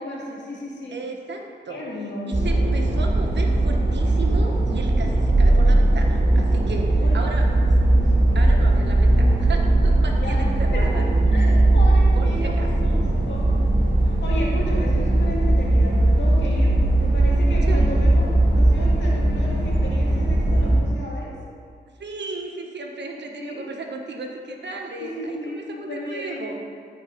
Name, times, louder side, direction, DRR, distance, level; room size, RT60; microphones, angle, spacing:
voice 1, 0.0-1.0 1.7-2.4 7.0-7.6 8.0-8.3 10.2-10.4 10.7-13.5 14.0-16.7 17.0-18.2 18.5-21.3 23.4-23.6 25.0-26.5, left 1 dB, 90° left, -4 dB, 2.1 m, -33 dB
voice 2, 0.9-1.8 2.3-7.5 8.3-11.0 11.4-11.6 12.1-12.9 17.5-17.8 22.0-25.4 25.8-26.6, right 3 dB, 75° right, 1 dB, 1.3 m, -35 dB
sound 1, 2.3-20.8, right 2 dB, 50° right, 2.6 m, -19 dB
sound 2, 13.2-13.8 15.5-16.1 17.9-18.4, left 3 dB, 55° left, 1.1 m, -41 dB
13.5 x 4.8 x 5.2 m, 2.1 s
cardioid pair, 65°, 18 cm